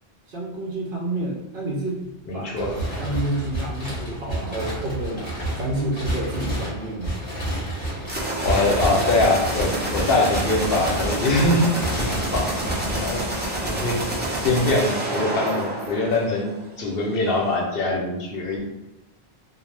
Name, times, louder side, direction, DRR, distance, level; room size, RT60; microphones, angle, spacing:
voice 1, 0.3-5.2 5.5-7.2, right 1 dB, 60° right, -2 dB, 0.8 m, -29 dB
voice 2, 2.3-2.8 8.4-11.6 12.0-12.6 12.9-18.7, left 2 dB, 70° left, 0 dB, 0.8 m, -23 dB
sound 1, 2.5-13.7, equal, 30° left, 0.7 m, -30 dB
sound 2, 8.0-16.7, right 1 dB, 15° right, 0.3 m, -28 dB
2.5 x 2.0 x 3.2 m, 0.98 s
omnidirectional pair, 1.1 m